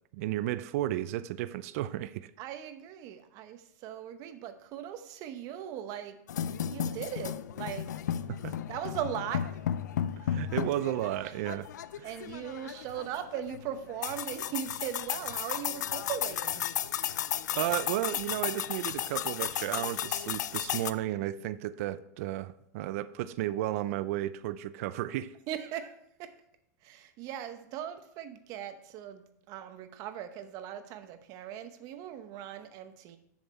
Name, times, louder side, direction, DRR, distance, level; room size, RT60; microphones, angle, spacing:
voice 1, 0.1-2.3 8.3-8.5 10.2-11.7 12.0-12.1 17.5-25.3, right 14 dB, 55° right, 0.5 m, -33 dB
voice 2, 2.4-6.2 6.7-7.9 8.7-9.4 12.0-16.6 25.5-26.3 26.8-33.2, right 10 dB, 40° right, 0.9 m, -39 dB
sound 1, 6.3-20.9, left 10 dB, 85° left, 0.5 m, -34 dB
7.2 x 7.1 x 4.4 m
supercardioid pair, 140°, 9 cm